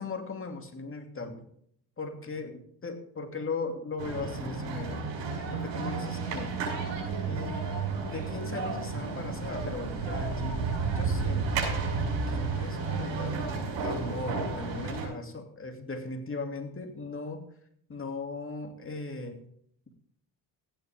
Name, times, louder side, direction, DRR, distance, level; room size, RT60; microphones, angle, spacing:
voice 1, 0.0-1.4 2.0-5.0 5.5-6.5 7.2-7.7 8.1-10.6 10.9-11.7 12.3-13.5 13.8-17.4 17.9-19.4, left 3 dB, 30° left, 5 dB, 2.7 m, -38 dB
sound 1, 4.0-15.1, right 4 dB, 90° right, 6.6 m, -32 dB
15.5 x 10.5 x 3.6 m, 0.66 s
cardioid pair, 95°, 43 cm